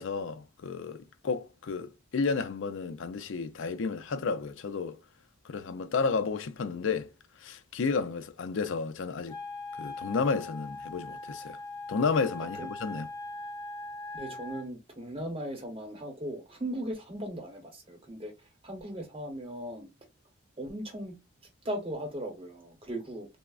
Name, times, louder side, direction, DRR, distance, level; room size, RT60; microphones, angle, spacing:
voice 1, 0.0-5.0 5.4-7.1 7.4-9.4 9.8-11.6 11.9-13.1, left 4 dB, 70° left, 0.4 m, -32 dB
Wind instrument woodwind instrument, 9.3-14.7, left 2 dB, 20° left, 0.6 m, -41 dB
voice 2, 14.1-18.3 18.6-19.9 20.6-21.1 21.6-23.4, right 1 dB, 25° right, 0.8 m, -38 dB
3.3 x 2.0 x 2.3 m
head